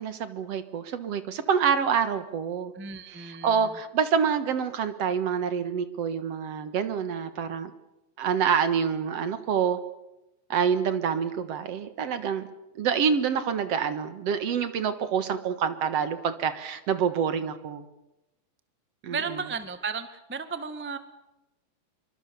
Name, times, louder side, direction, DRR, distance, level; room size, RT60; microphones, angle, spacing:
voice 1, 0.0-2.7 3.1-7.7 8.2-9.8 10.5-12.5 12.8-17.9 19.0-19.4, right 7 dB, 60° right, 11 dB, 2.4 m, -27 dB
voice 2, 2.7-3.7 19.1-21.0, right 5 dB, 10° right, 10 dB, 0.7 m, -34 dB
26.5 x 24.0 x 7.0 m, 0.93 s
omnidirectional pair, 3.3 m